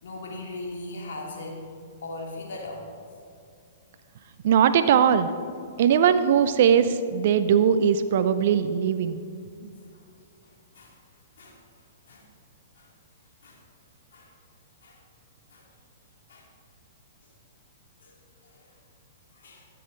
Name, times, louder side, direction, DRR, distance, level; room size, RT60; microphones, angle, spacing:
voice 1, 0.0-1.7 2.0-2.9 9.9-10.0 10.7-10.9 11.4-11.6 12.1-12.3 12.8-12.9 13.4-13.6 14.1-14.3 14.8-15.0 15.5-15.6 16.3-16.5 18.0-18.1 18.4-18.7 19.3-19.7, left 2 dB, 75° left, -1 dB, 2.7 m, -39 dB
voice 2, 4.4-5.3 5.8-9.2, right 8 dB, 60° right, 11 dB, 0.4 m, -20 dB
13.0 x 7.6 x 3.9 m, 2.4 s
hypercardioid pair, 125°, 0 cm